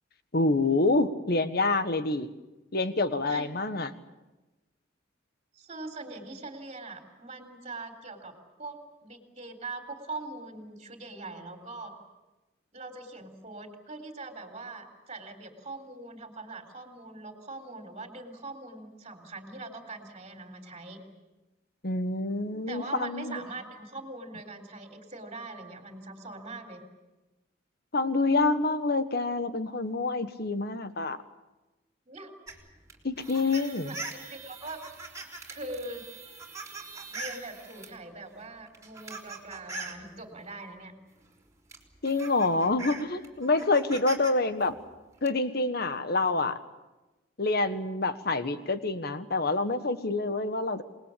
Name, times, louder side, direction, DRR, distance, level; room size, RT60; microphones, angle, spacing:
voice 1, 0.3-2.3 2.7-3.9 21.8-23.4 27.9-31.2 33.0-33.9 42.0-44.8 45.2-46.6 47.4-50.8, left 3 dB, 55° left, 10 dB, 1.5 m, -27 dB
voice 2, 5.5-8.3 8.6-8.8 9.0-11.9 12.7-21.0 22.7-26.8 32.1-32.3 33.5-34.8 35.5-36.0 37.1-40.9, right 2 dB, 35° right, 3 dB, 3.6 m, -42 dB
sound 1, 32.5-38.0 38.7-40.0 41.2-41.3 41.7-44.3 44.6-45.3, right 3 dB, 15° right, 3.7 m, -42 dB
27.5 x 20.0 x 8.6 m, 1.1 s
head